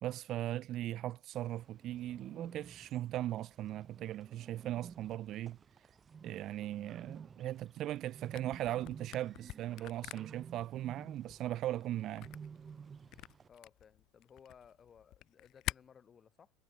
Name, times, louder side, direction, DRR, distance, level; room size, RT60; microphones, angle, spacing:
voice 1, 0.0-5.6 6.2-12.3, right 13 dB, 40° right, 0.3 m, -38 dB
Bird, 1.3-13.5, right 6 dB, 20° right, 0.9 m, -54 dB
Camera, 8.2-15.8, left 16 dB, 45° left, 0.4 m, -46 dB
voice 2, 13.5-16.5, left 7 dB, 25° left, 3.3 m, -60 dB
supercardioid pair, 145°, 0 cm